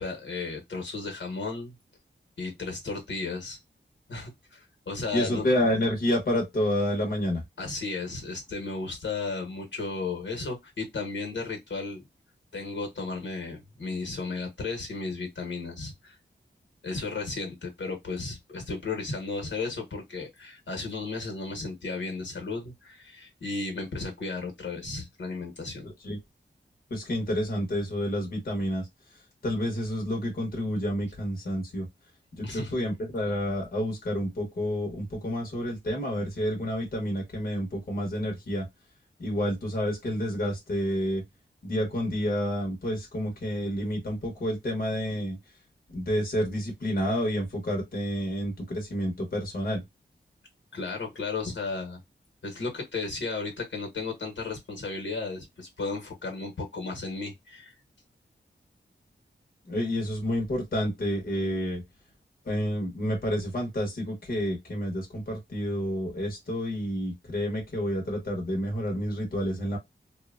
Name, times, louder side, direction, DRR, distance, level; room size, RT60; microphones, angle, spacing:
voice 1, 0.0-1.7 2.4-3.6 4.1-5.5 7.6-12.0 12.5-16.2 16.8-25.9 32.4-32.7 50.7-52.0 52.4-57.7, left 3 dB, 75° left, 1.1 m, -34 dB
voice 2, 5.1-7.4 26.0-26.2 26.9-28.9 29.4-31.9 32.4-38.7 39.2-41.2 41.6-45.4 45.9-49.8 59.7-61.8 62.5-69.8, equal, 50° left, 0.9 m, -29 dB
2.8 x 2.2 x 2.3 m
wide cardioid pair, 120°, 19 cm